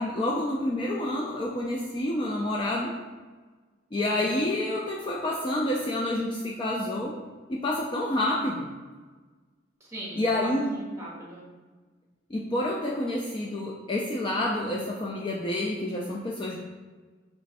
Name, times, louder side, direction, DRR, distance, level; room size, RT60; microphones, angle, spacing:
voice 1, 0.0-2.9 3.9-7.2 7.5-8.7 10.2-10.7 12.3-16.6, left 1 dB, 25° left, -2 dB, 0.3 m, -28 dB
voice 2, 3.9-4.3 9.8-11.5, right 1 dB, 15° right, -5 dB, 1.0 m, -41 dB
3.3 x 3.0 x 4.1 m, 1.4 s
head